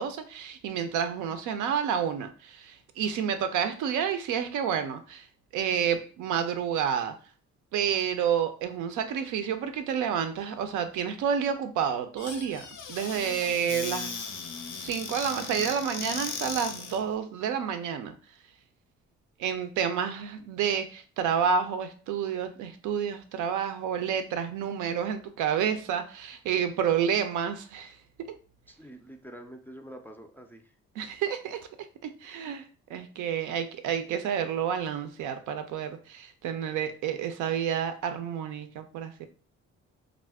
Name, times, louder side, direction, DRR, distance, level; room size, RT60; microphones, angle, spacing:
voice 1, 0.0-5.3 5.5-7.1 7.7-14.3 14.7-18.1 19.4-28.0 31.0-39.3, right 8 dB, 90° right, 8 dB, 0.5 m, -29 dB
Squeak / Cupboard open or close, 12.2-17.0, left 5 dB, 85° left, 0.6 m, -37 dB
voice 2, 28.7-30.7, right 1 dB, 5° left, 3 dB, 0.3 m, -46 dB
2.4 x 2.1 x 3.4 m, 0.39 s
cardioid pair, 90°, 30 cm